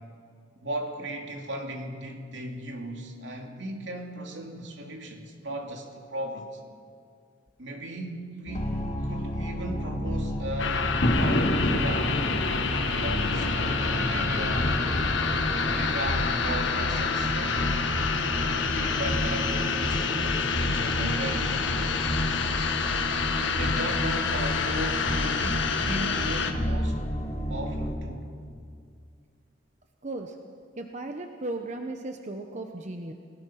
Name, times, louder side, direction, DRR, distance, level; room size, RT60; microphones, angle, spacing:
voice 1, 0.6-6.6 7.6-10.9 11.2-12.2 13.0-14.8 15.6-17.7 18.4-21.6 23.4-27.0 27.5-28.3, right 1 dB, 75° right, 2 dB, 2.8 m, -37 dB
sound 1, 8.5-27.9, equal, 35° left, 3.3 m, -31 dB
sound 2, 10.6-26.5, left 5 dB, 80° left, 1.5 m, -28 dB
sound 3, 11.0-23.9, equal, 55° left, 3.2 m, -34 dB
voice 2, 30.0-30.4 30.8-33.1, right 2 dB, 40° right, 4 dB, 1.1 m, -36 dB
29.5 x 18.5 x 5.9 m, 2.2 s
head